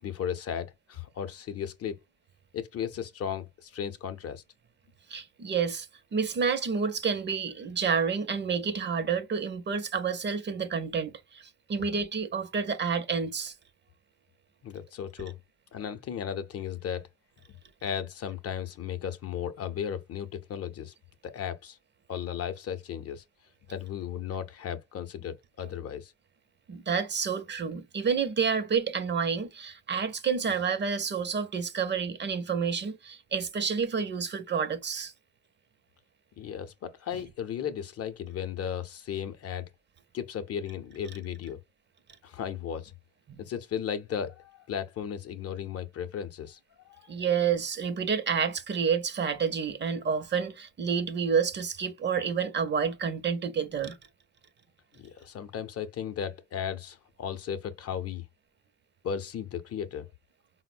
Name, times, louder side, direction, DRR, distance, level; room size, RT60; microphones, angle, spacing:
voice 1, 0.0-2.0 2.5-4.4 14.6-15.4 15.7-17.1 17.8-20.9 21.2-21.8 22.1-23.2 23.7-26.1 36.4-39.7 40.1-41.6 42.2-42.9 43.4-46.6 46.9-47.0 55.0-58.2 59.0-60.1, left 8 dB, 50° left, 0.6 m, -35 dB
voice 2, 5.1-13.5 26.7-35.1 43.3-43.4 47.1-54.0, right 6 dB, 35° right, 0.5 m, -29 dB
3.8 x 2.0 x 2.4 m
cardioid pair, 90°, 30 cm